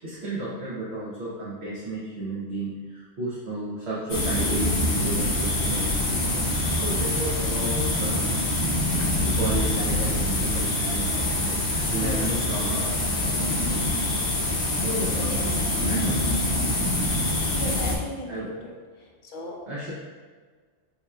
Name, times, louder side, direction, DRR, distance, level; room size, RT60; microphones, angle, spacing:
voice 1, 0.0-8.3 9.2-16.3 18.3-18.5 19.7-19.9, right 1 dB, 65° right, -9 dB, 1.2 m, -33 dB
sound 1, 4.1-18.0, left 1 dB, 70° left, 1.2 m, -25 dB
voice 2, 17.5-18.7 19.0-19.6, left 1 dB, 50° left, -1 dB, 0.8 m, -36 dB
7.0 x 2.9 x 2.4 m, 1.5 s
omnidirectional pair, 1.2 m